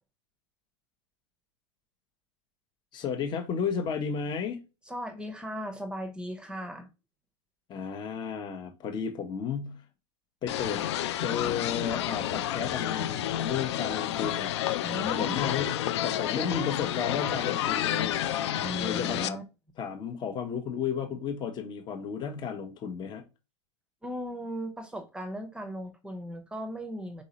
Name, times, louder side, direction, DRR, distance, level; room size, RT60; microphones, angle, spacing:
voice 1, 2.9-4.6 7.7-9.8 10.4-10.8 11.2-14.5 15.2-18.2 18.8-19.4 19.8-23.3, left 7 dB, 30° left, 0.9 m, -33 dB
voice 2, 4.8-6.9 14.8-15.5 18.6-19.4 24.0-27.2, equal, 5° right, 0.7 m, -37 dB
sound 1, 10.5-19.3, left 12 dB, 65° left, 0.4 m, -30 dB
4.0 x 3.8 x 2.9 m
hypercardioid pair, 105°, 15 cm